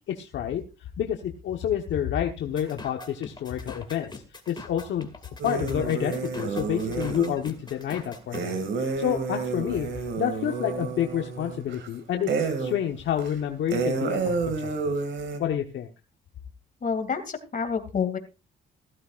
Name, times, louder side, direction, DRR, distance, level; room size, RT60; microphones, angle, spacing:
voice 1, 0.1-0.6 1.0-4.1 4.5-5.1 5.4-9.9 10.2-14.9 15.4-15.9, left 10 dB, 70° left, 3 dB, 1.2 m, -29 dB
sound 1, 2.6-8.4, left 3 dB, 20° left, 2.4 m, -43 dB
sound 2, 5.4-7.4 8.3-11.9 12.3-12.8 13.2-13.3 13.7-15.4, right 4 dB, 65° right, 2.4 m, -30 dB
voice 2, 16.8-18.2, left 6 dB, 40° left, 7 dB, 2.6 m, -28 dB
16.0 x 12.5 x 2.5 m, 0.30 s
cardioid pair, 90°, 20 cm